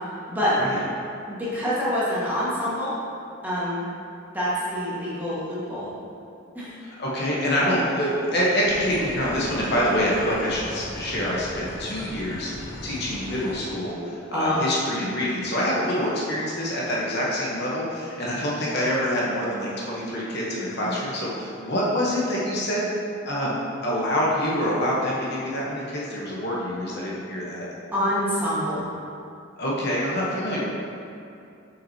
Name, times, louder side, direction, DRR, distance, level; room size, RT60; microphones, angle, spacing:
voice 1, 0.5-0.8 6.8-22.9 23.2-27.7 29.6-30.6, equal, 55° left, -5 dB, 1.0 m, -26 dB
voice 2, 1.3-2.9 3.4-3.8 4.3-5.9 6.5-6.8 14.3-14.6 14.9-15.0 20.8-21.0 27.9-28.8, equal, 10° right, -10 dB, 1.5 m, -26 dB
sound 1, 8.6-13.7, equal, 85° left, 1.0 m, -38 dB
6.1 x 5.8 x 2.8 m, 2.6 s
head